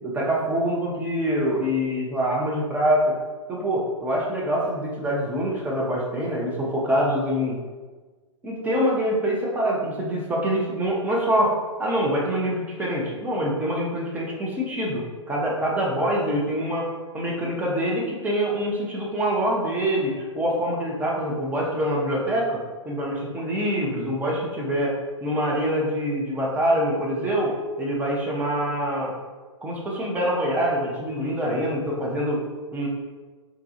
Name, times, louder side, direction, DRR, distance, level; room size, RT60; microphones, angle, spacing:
voice 1, 0.0-3.2 3.5-7.6 8.4-11.5 11.8-16.9 17.1-27.5 27.8-29.1 29.6-32.4 32.7-32.9, equal, 10° right, -3 dB, 0.5 m, -25 dB
3.6 x 2.3 x 2.7 m, 1.4 s
figure-of-eight pair, 110°, 16 cm